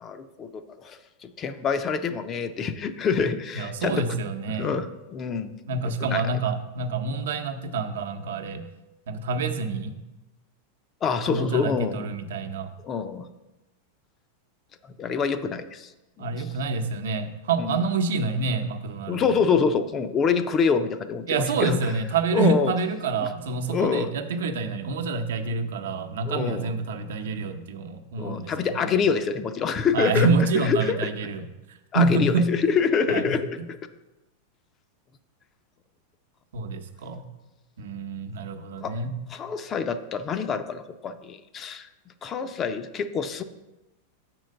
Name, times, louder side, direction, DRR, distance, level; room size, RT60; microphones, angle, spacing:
voice 1, 0.0-4.2 4.5-5.6 5.8-6.3 11.0-12.0 12.8-13.3 14.8-15.9 16.2-16.5 17.6-17.9 19.1-21.8 22.3-22.7 23.2-23.3 23.7-24.1 26.3-26.7 28.2-30.3 30.6-31.1 31.9-33.8 38.8-39.0 39.3-41.9 42.2-43.4, left 5 dB, 20° left, 10 dB, 0.4 m, -26 dB
voice 2, 3.6-4.8 5.7-8.7 9.1-10.0 11.3-12.7 16.2-19.3 21.3-28.5 28.8-29.0 29.9-32.5 33.1-33.4 36.5-37.2 37.8-39.1, right 3 dB, 90° right, 6 dB, 0.8 m, -27 dB
6.6 x 4.5 x 6.4 m, 1.0 s
supercardioid pair, 160°, 0 cm